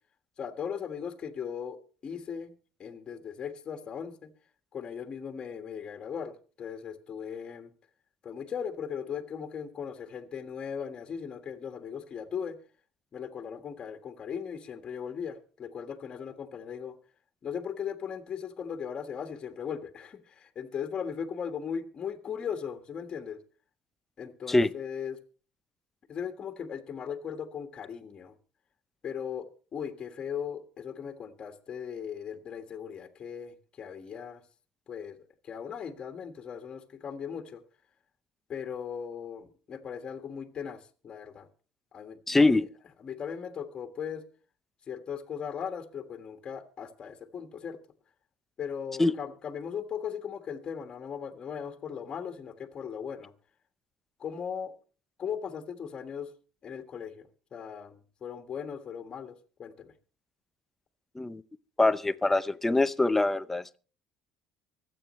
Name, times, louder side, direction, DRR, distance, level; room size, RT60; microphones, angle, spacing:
voice 1, 0.4-2.5 2.8-4.3 4.7-7.7 8.2-12.6 13.1-16.9 17.4-23.4 24.2-25.2 26.1-28.3 29.0-34.4 34.9-35.2 35.4-37.6 38.5-41.5 41.9-42.6 43.0-44.2 44.9-47.8 48.6-53.3 54.2-54.7 55.2-56.3 56.6-59.9, left 7 dB, 40° left, 1.6 m, -38 dB
voice 2, 42.3-42.7 49.0-49.1 61.2-61.4 61.8-63.8, left 2 dB, 10° left, 0.7 m, -24 dB
24.5 x 8.6 x 3.2 m
supercardioid pair, 100°, 2 cm